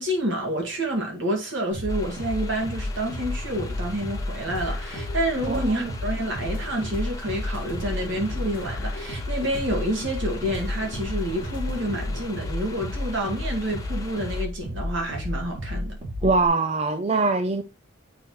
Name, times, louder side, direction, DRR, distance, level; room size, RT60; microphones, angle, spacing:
voice 1, 0.0-16.0, right 1 dB, 65° right, 2.0 m, -28 dB
sound 1, 1.7-16.5, left 1 dB, 45° right, 2.6 m, -32 dB
sound 2, 1.9-14.4, left 3 dB, 15° left, 0.7 m, -43 dB
sound 3, 4.5-6.0 6.4-10.0 10.4-12.5, left 2 dB, 70° left, 0.7 m, -40 dB
voice 2, 5.5-5.9 16.2-17.6, right 3 dB, 30° right, 0.4 m, -23 dB
8.3 x 4.7 x 3.0 m
head